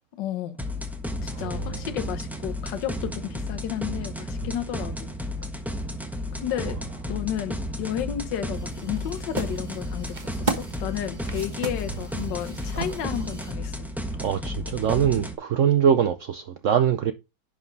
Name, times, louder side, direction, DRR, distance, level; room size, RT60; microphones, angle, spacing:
voice 1, 0.2-0.6 1.2-5.1 6.4-6.8 7.1-13.9, left 10 dB, 70° left, 1.6 m, -32 dB
sound 1, 0.6-15.3, left 1 dB, ahead, 0.8 m, -33 dB
voice 2, 1.3-1.8 14.2-17.1, right 8 dB, 85° right, 0.6 m, -23 dB
sound 2, 8.5-13.5, right 3 dB, 25° right, 1.2 m, -35 dB
11.0 x 5.2 x 4.0 m
omnidirectional pair, 2.1 m